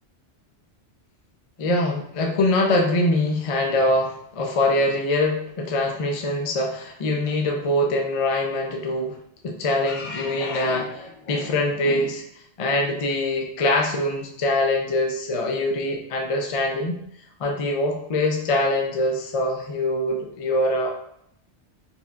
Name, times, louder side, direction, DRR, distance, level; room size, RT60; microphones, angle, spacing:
voice 1, 1.6-9.2 9.4-12.2 12.6-17.0 17.4-20.9, left 1 dB, 45° left, 1 dB, 0.4 m, -23 dB
4.3 x 2.8 x 2.4 m, 0.72 s
omnidirectional pair, 1.2 m